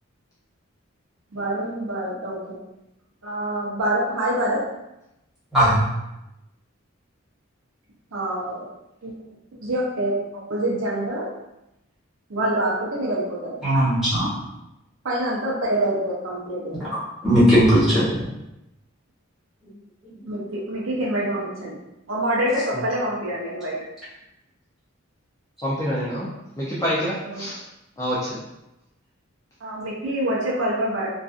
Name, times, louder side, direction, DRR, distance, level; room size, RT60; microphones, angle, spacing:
voice 1, 1.3-2.6 3.2-4.6 8.1-8.7 9.0-9.1 9.6-11.3 12.3-13.6 15.0-16.8 20.3-21.8 22.1-23.8 27.2-27.5 29.6-31.1, right 1 dB, 70° right, -4 dB, 0.6 m, -26 dB
voice 2, 5.5-5.8 13.6-14.3 17.2-18.1 20.0-20.4, equal, ahead, -13 dB, 1.2 m, -18 dB
voice 3, 25.6-26.3 26.6-27.6 28.0-28.4, equal, 15° left, -8 dB, 0.4 m, -26 dB
2.5 x 2.4 x 2.3 m, 0.91 s
head